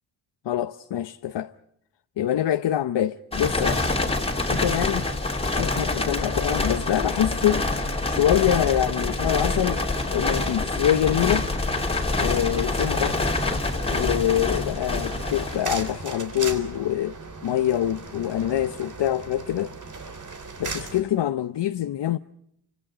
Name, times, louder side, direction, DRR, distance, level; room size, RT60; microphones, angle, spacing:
voice 1, 0.4-1.5 2.2-3.9 4.5-5.1 5.5-7.7 8.0-9.8 10.1-11.5 12.2-13.3 13.9-17.2 17.4-19.7 20.6-22.2, left 11 dB, 80° left, 0.8 m, -25 dB
sound 1, 3.3-16.1, left 2 dB, 15° left, 2.9 m, -26 dB
sound 2, 12.3-21.0, right 4 dB, 45° right, 3.4 m, -38 dB
30.0 x 25.5 x 5.0 m
wide cardioid pair, 170°, 41 cm